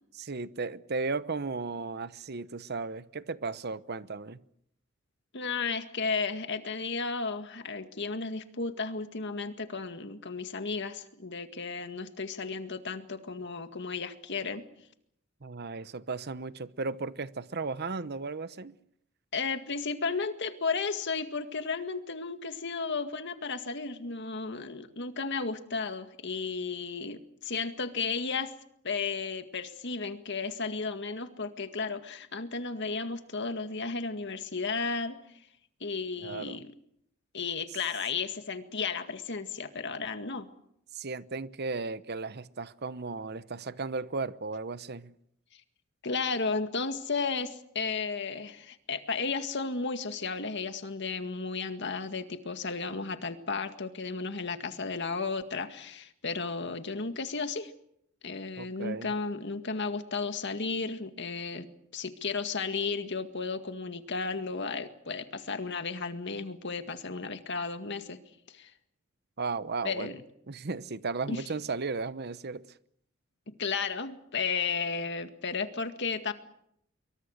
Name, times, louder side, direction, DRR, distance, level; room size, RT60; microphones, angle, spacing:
voice 1, 0.1-4.4 15.4-18.8 36.2-36.6 40.9-45.1 58.6-59.1 69.4-70.1 70.5-72.7, right 4 dB, 50° right, 0.9 m, -35 dB
voice 2, 5.3-14.6 19.3-28.5 28.8-35.2 35.8-36.7 37.3-40.5 46.0-57.7 58.2-61.7 61.9-68.2 68.5-68.7 69.8-70.2 71.3-71.4 73.5-76.3, left 4 dB, 55° left, 2.0 m, -34 dB
26.0 x 23.5 x 6.6 m
head